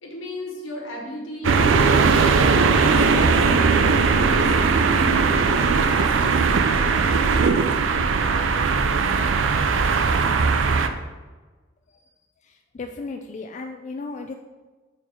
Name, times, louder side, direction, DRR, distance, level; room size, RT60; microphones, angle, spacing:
voice 1, 0.0-1.9 2.5-3.5 4.2-5.4 5.8-7.2, left 1 dB, 80° left, 0 dB, 1.5 m, -35 dB
sound 1, 1.4-10.9, right 4 dB, 75° right, 0.5 m, -19 dB
voice 2, 12.7-14.3, left 3 dB, 35° left, 4 dB, 0.3 m, -34 dB
4.6 x 4.6 x 5.5 m, 1.3 s
head